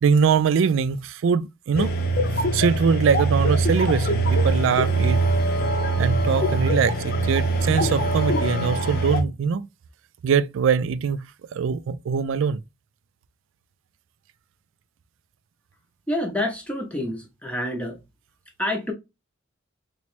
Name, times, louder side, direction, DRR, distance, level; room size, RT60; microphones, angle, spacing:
voice 1, 0.0-1.9 2.5-5.2 6.0-9.7 10.2-12.6, right 6 dB, 70° right, 0.3 m, -22 dB
sound 1, 1.7-9.2, right 2 dB, 50° left, 0.7 m, -23 dB
voice 2, 16.1-18.0 18.6-18.9, left 1 dB, 5° left, 0.7 m, -28 dB
3.1 x 3.0 x 3.1 m
head